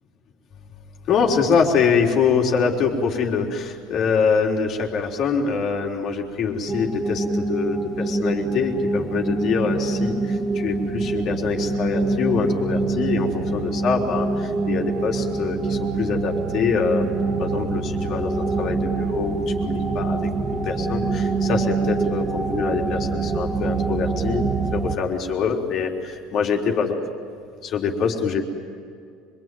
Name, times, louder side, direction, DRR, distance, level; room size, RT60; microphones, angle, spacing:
voice 1, 1.1-20.3 20.6-24.4 24.7-27.0 27.6-28.4, left 5 dB, 40° left, 1 dB, 3.8 m, -24 dB
sound 1, 6.7-25.0, right 3 dB, 15° right, 1.6 m, -25 dB
26.5 x 22.5 x 9.3 m, 2.3 s
cardioid pair, 150°, 0 cm